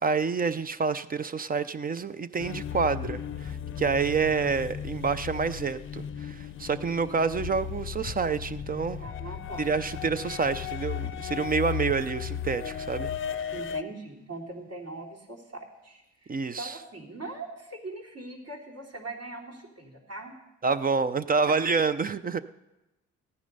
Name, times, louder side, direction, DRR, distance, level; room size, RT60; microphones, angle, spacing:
voice 1, 0.0-9.0 9.6-13.1 16.3-16.7 20.6-22.4, right 5 dB, 30° right, 13 dB, 0.5 m, -28 dB
sound 1, 2.4-13.8, left 9 dB, 40° left, 0.6 m, -36 dB
voice 2, 9.0-9.7 13.5-20.3, right 2 dB, 55° right, -2 dB, 3.4 m, -41 dB
14.5 x 9.8 x 5.4 m, 0.98 s
cardioid pair, 90°, 30 cm